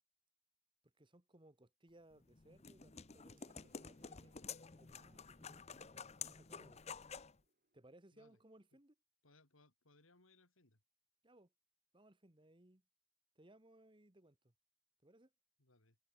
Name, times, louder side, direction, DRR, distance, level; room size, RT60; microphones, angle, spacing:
voice 1, 0.8-6.8 7.7-8.9 11.2-11.5 11.9-12.8 13.3-14.5 15.0-15.3, right 1 dB, 25° right, 1.5 m, -65 dB
sound 1, 2.1-7.4, left 6 dB, 30° left, 0.8 m, -51 dB
sound 2, 3.4-8.2, right 2 dB, 45° right, 6.3 m, -79 dB
voice 2, 9.2-10.8 15.6-16.0, left 2 dB, 80° left, 3.8 m, -69 dB
head